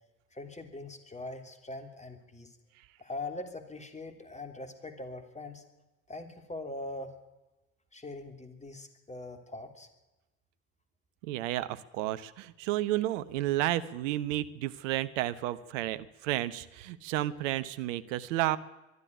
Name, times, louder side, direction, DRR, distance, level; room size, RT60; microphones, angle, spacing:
voice 1, 0.3-2.5 3.0-5.6 6.1-7.1 7.9-9.9, left 2 dB, 15° left, 7 dB, 3.2 m, -42 dB
voice 2, 11.2-18.6, right 15 dB, 65° right, 12 dB, 1.1 m, -32 dB
22.5 x 12.0 x 9.9 m, 1.0 s
figure-of-eight pair, 60°, 40 cm